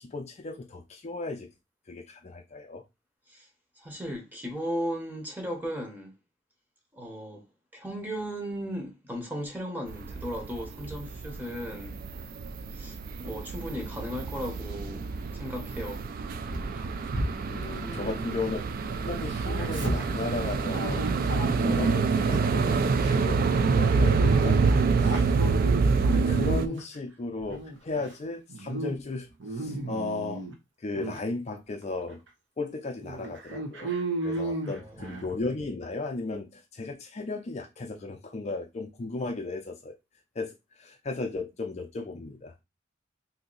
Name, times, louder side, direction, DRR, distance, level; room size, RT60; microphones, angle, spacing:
voice 1, 0.0-1.5 1.9-2.8 17.5-18.6 19.0-21.3 21.6-24.6 25.0-25.3 26.1-30.4 30.8-32.2 32.6-34.0 34.2-40.0 40.4-42.5, left 3 dB, 35° left, 0.4 m, -35 dB
voice 2, 3.8-6.1 6.9-7.4 7.7-12.0 12.7-16.0 17.8-18.4 34.8-34.9, equal, 10° right, 0.9 m, -36 dB
sound 1, 9.9-26.7, right 4 dB, 50° right, 0.3 m, -27 dB
Dog, 16.5-18.8 19.0-22.4 22.8-23.1 23.8-27.0 27.4-28.1 28.5-28.9 29.3-30.5 30.9-31.2 31.8-31.9 32.3-32.4 33.0-35.3, right 2 dB, 70° right, 0.9 m, -34 dB
2.8 x 2.7 x 3.9 m
head